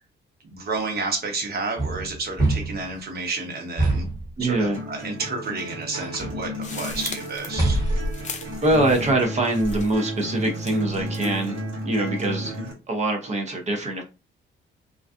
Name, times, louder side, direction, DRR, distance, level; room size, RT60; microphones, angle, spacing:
voice 1, 0.4-4.0 4.4-7.8, right 3 dB, 55° right, 1.0 m, -30 dB
sound 1, 1.8-2.9 3.8-4.3 5.9-6.5 7.6-8.2, right 2 dB, 20° right, 1.0 m, -25 dB
voice 2, 4.4-4.8 8.6-11.6 11.9-12.5 12.9-14.0, right 2 dB, 35° right, 0.6 m, -23 dB
sound 2, 4.7-12.7, equal, 85° right, 1.2 m, -33 dB
sound 3, 6.6-9.2 9.5-10.1 10.6-11.5, left 1 dB, 35° left, 0.5 m, -32 dB
2.4 x 2.2 x 2.4 m
cardioid pair, 90°, 20 cm